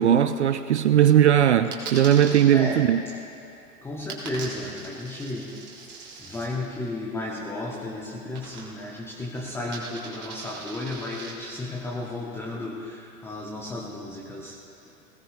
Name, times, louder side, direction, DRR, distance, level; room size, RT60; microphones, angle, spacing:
voice 1, 0.0-3.0, right 10 dB, 50° right, 11 dB, 0.5 m, -19 dB
Coin (dropping), 1.7-2.4 4.1-6.5 8.3-9.0 9.2-11.3, right 4 dB, 25° right, 2.6 m, -40 dB
voice 2, 2.5-2.9 3.8-5.5 6.2-14.6, left 2 dB, 5° left, -4 dB, 0.9 m, -33 dB
21.5 x 17.0 x 2.5 m, 2.7 s
figure-of-eight pair, 105°, 47 cm